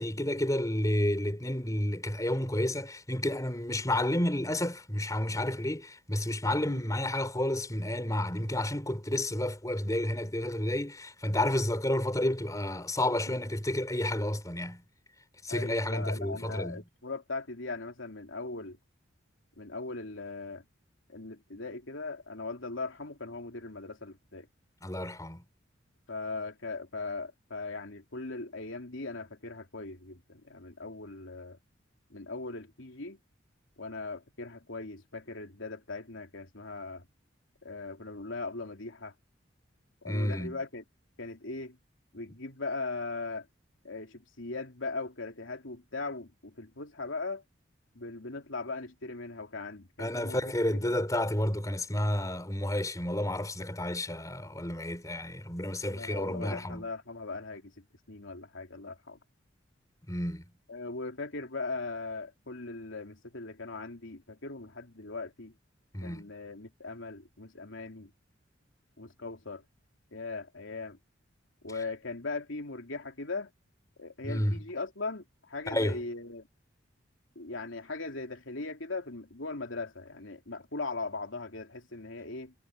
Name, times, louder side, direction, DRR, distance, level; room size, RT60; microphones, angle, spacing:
voice 1, 0.0-14.8 15.4-16.8 24.8-25.4 40.1-40.6 50.0-56.9 60.1-60.4 65.9-66.3 74.2-74.6 75.7-76.0, left 1 dB, 20° left, 4.5 m, -31 dB
voice 2, 15.5-18.8 19.6-20.6 21.1-24.5 26.1-31.6 32.1-33.2 33.8-37.0 37.6-39.1 40.0-40.8 41.2-41.8 42.1-43.5 43.8-47.4 47.9-50.9 55.9-59.2 60.7-65.5 66.0-68.1 69.0-69.6 70.1-71.0 71.6-73.5 74.0-76.5 77.3-82.5, left 3 dB, 80° left, 3.2 m, -39 dB
head